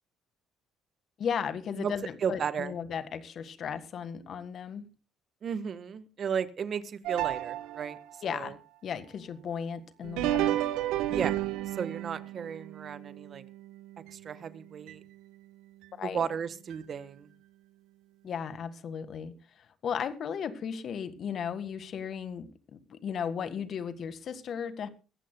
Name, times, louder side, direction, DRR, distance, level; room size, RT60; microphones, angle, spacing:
voice 1, 1.2-4.9 8.2-8.6 8.8-10.6 16.0-16.3 18.2-19.3 19.8-24.9, left 7 dB, 55° left, 11 dB, 1.7 m, -35 dB
voice 2, 2.2-2.7 5.4-8.0 8.3-8.5 11.1-13.4 14.1-15.0 16.0-17.3, right 7 dB, 50° right, 13 dB, 1.2 m, -34 dB
sound 1, 7.0-8.2 10.0-14.4 14.9-15.0 15.8-15.9 16.7-16.8, right 14 dB, 75° right, 0.9 m, -32 dB
22.0 x 15.5 x 2.2 m, 0.31 s
hypercardioid pair, 65°, 0 cm